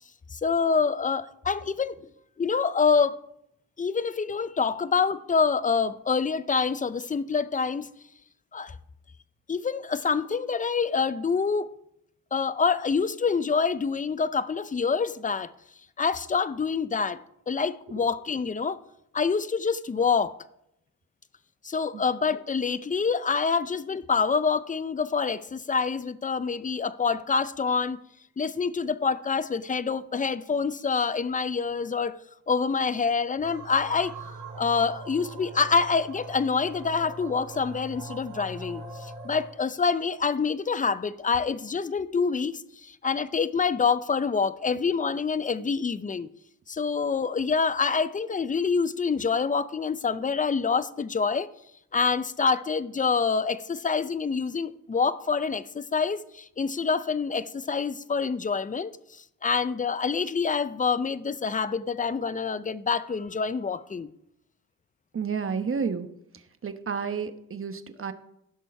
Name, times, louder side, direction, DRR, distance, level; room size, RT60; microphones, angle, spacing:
voice 1, 0.3-2.0 2.4-3.2 3.8-7.9 8.5-8.7 9.5-11.7 12.3-15.5 16.0-17.2 17.5-18.8 19.1-20.3 21.6-28.0 28.4-32.2 32.5-34.1 34.5-46.3 46.7-51.5 51.9-58.9 59.4-64.1, left 5 dB, 20° left, 0.6 m, -26 dB
sound 1, 33.4-39.6, right 2 dB, 85° right, 2.2 m, -41 dB
voice 2, 65.1-66.1 66.3-68.1, right 6 dB, 35° right, 1.1 m, -31 dB
15.5 x 6.2 x 4.4 m
cardioid pair, 75°, 35 cm